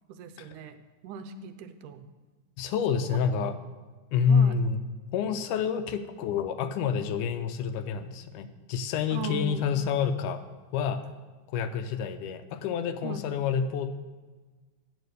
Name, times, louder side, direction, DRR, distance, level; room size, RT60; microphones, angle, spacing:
voice 1, 0.1-0.8 1.0-2.1 2.9-3.0 3.4-3.5 4.3-4.6 9.1-9.8 13.0-13.3, right 5 dB, 80° right, 9 dB, 2.1 m, -38 dB
voice 2, 2.6-3.6 4.1-4.8 5.1-10.4 10.7-11.0 11.5-13.9, left 6 dB, 85° left, 9 dB, 2.1 m, -28 dB
9.3 x 8.0 x 6.6 m, 1.4 s
omnidirectional pair, 3.7 m